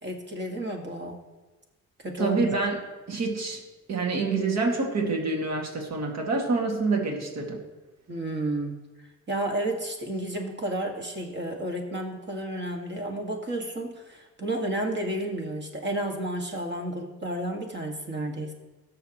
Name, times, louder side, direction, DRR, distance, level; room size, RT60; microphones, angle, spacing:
voice 1, 0.0-1.2 2.0-2.5 8.1-8.8 9.3-18.5, right 1 dB, 35° right, 2 dB, 1.8 m, -31 dB
voice 2, 2.2-2.8 3.1-3.6 3.9-7.6, right 3 dB, 60° right, 0 dB, 2.1 m, -27 dB
18.0 x 6.7 x 3.0 m, 1.2 s
cardioid pair, 90°, 30 cm